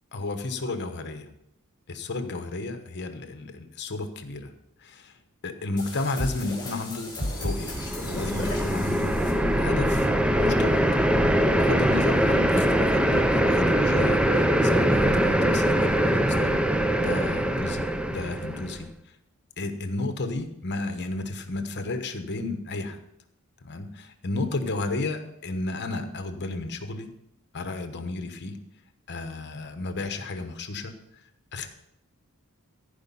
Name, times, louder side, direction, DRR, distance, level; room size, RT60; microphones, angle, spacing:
voice 1, 0.1-1.3 1.9-4.5 4.8-5.1 5.4-7.8 8.1-9.2 9.6-10.1 10.4-10.8 11.5-16.6 17.0-18.9 19.6-23.0 23.6-27.1 27.5-28.6 29.1-31.0 31.5-31.7, left 2 dB, 50° left, 7 dB, 1.1 m, -32 dB
sound 1, 5.8-9.9, left 1 dB, 20° left, 4.0 m, -35 dB
sound 2, 7.4-18.8, right 1 dB, 5° right, 0.5 m, -23 dB
15.0 x 5.1 x 5.5 m, 0.81 s
head